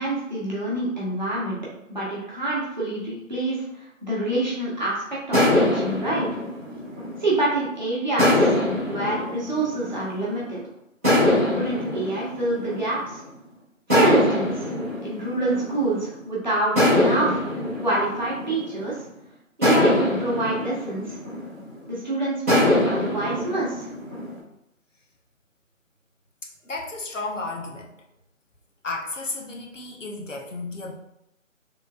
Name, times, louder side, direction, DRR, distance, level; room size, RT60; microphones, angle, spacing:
voice 1, 0.0-1.6 1.9-6.3 7.2-8.3 8.9-10.6 11.5-13.2 13.9-14.6 15.0-17.4 17.8-19.0 19.6-21.2 21.9-23.9, right 2 dB, 35° right, -7 dB, 1.2 m, -26 dB
sound 1, 5.3-7.6 8.2-10.4 11.0-13.3 13.9-16.1 16.7-19.0 19.6-21.9 22.5-24.3, left 1 dB, 10° right, 1.1 m, -23 dB
voice 2, 26.6-27.9 28.8-30.9, left 3 dB, 65° left, -1 dB, 0.9 m, -33 dB
4.2 x 3.3 x 2.4 m, 0.85 s
figure-of-eight pair, 165°, 40 cm